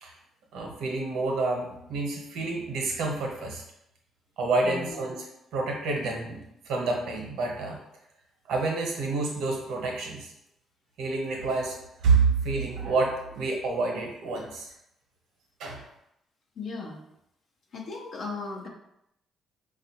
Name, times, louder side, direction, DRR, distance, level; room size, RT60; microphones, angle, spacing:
voice 1, 0.5-3.6 4.4-5.3 5.5-7.8 8.5-10.3 11.0-14.7 15.6-15.8, right 3 dB, 80° right, 0 dB, 0.9 m, -28 dB
voice 2, 4.6-5.0 16.6-17.0 17.7-18.7, left 3 dB, 65° left, -1 dB, 0.6 m, -36 dB
5.0 x 2.4 x 2.8 m, 0.79 s
cardioid pair, 80°, 0 cm